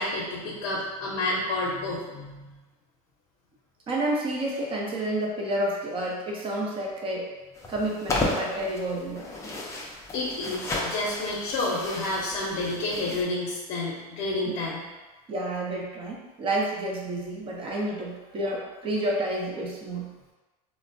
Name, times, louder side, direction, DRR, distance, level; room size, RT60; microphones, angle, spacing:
voice 1, 0.0-2.6 10.1-14.9, left 2 dB, 50° left, -6 dB, 0.7 m, -30 dB
voice 2, 3.9-7.3 7.7-9.3 15.3-20.1, right 1 dB, 30° right, -2 dB, 0.7 m, -30 dB
sound 1, 7.6-13.2, left 2 dB, 15° left, 0.5 m, -33 dB
3.2 x 2.1 x 2.6 m, 1.2 s
supercardioid pair, 125°, 19 cm